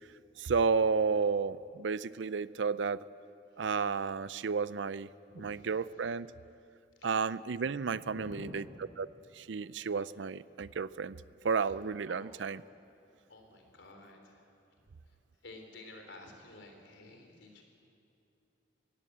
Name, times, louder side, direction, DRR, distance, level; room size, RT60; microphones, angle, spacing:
voice 1, 0.4-3.0 3.6-5.1 5.3-6.3 7.0-8.6 9.0-9.1 9.3-11.2 11.4-12.6, right 5 dB, 80° right, 17 dB, 0.5 m, -32 dB
voice 2, 5.2-5.7 7.0-7.1 7.9-8.9 12.1-12.3 13.3-14.5 15.4-17.6, left 2 dB, 80° left, 3 dB, 3.5 m, -51 dB
21.5 x 16.5 x 8.6 m, 2.6 s
head